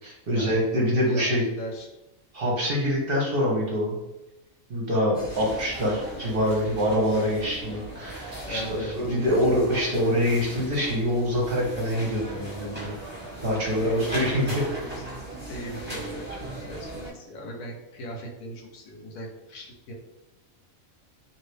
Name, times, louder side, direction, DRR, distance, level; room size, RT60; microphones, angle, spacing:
voice 1, 0.0-1.4 2.3-3.9 4.7-13.0 13.4-14.8, equal, 50° right, -2 dB, 0.8 m, -25 dB
voice 2, 1.6-1.9 7.2-7.6 8.4-9.1 14.9-15.0 15.5-19.9, equal, 80° left, 1 dB, 1.2 m, -39 dB
sound 1, 5.1-17.1, right 1 dB, 10° right, 0.9 m, -38 dB
2.8 x 2.7 x 3.2 m, 0.99 s
omnidirectional pair, 1.5 m